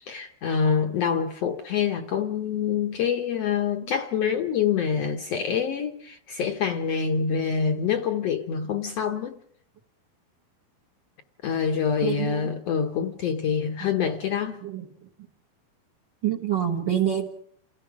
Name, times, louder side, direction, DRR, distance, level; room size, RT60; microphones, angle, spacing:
voice 1, 0.0-9.4 11.4-14.6, left 7 dB, 65° left, 1.6 m, -26 dB
voice 2, 12.0-12.5 14.6-15.1 16.2-17.3, right 10 dB, 55° right, 1.2 m, -27 dB
28.5 x 16.5 x 6.1 m
omnidirectional pair, 4.1 m